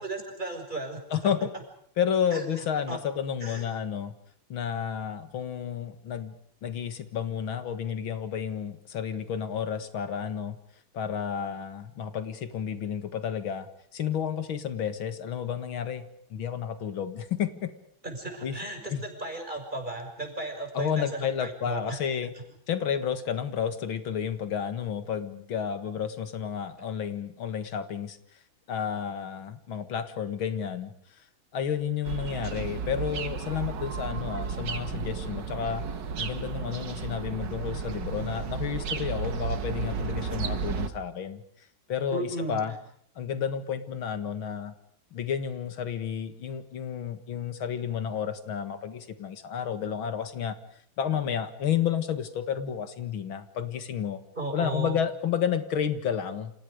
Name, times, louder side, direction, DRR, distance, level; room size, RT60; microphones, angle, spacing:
voice 1, 0.0-1.3 2.3-3.0 3.4-3.6 18.0-22.3 42.1-42.8 54.4-55.0, right 2 dB, 20° right, 3 dB, 6.0 m, -36 dB
voice 2, 1.1-1.5 2.0-4.1 4.5-6.3 6.6-10.6 10.9-17.7 18.4-18.6 18.9-19.0 20.7-22.3 22.7-28.2 28.7-30.9 31.5-35.9 36.2-41.4 41.9-42.7 43.2-44.7 45.1-50.6 51.0-54.2 54.5-56.5, left 8 dB, 90° left, 10 dB, 2.5 m, -31 dB
sound 1, 32.0-40.9, right 5 dB, 65° right, 2.1 m, -33 dB
29.5 x 27.5 x 5.1 m, 0.64 s
omnidirectional pair, 2.2 m